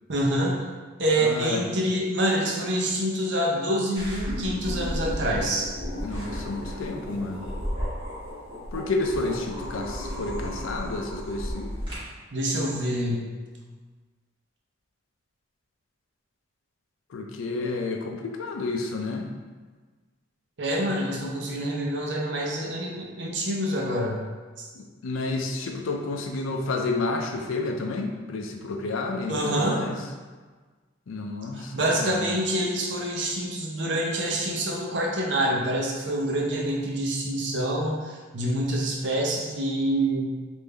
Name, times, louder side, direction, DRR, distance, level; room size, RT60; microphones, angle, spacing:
voice 1, 0.1-0.7 1.0-5.7 12.3-13.2 20.6-24.2 24.6-24.7 29.3-29.9 31.5-40.3, right 1 dB, 60° right, -2 dB, 0.6 m, -26 dB
voice 2, 1.2-1.6 6.0-7.4 8.7-11.7 17.1-19.3 24.8-30.0 31.1-32.3, left 3 dB, 85° left, 3 dB, 0.4 m, -30 dB
sound 1, 3.9-11.9, equal, 25° right, 1.3 m, -33 dB
3.5 x 2.6 x 3.3 m, 1.4 s
head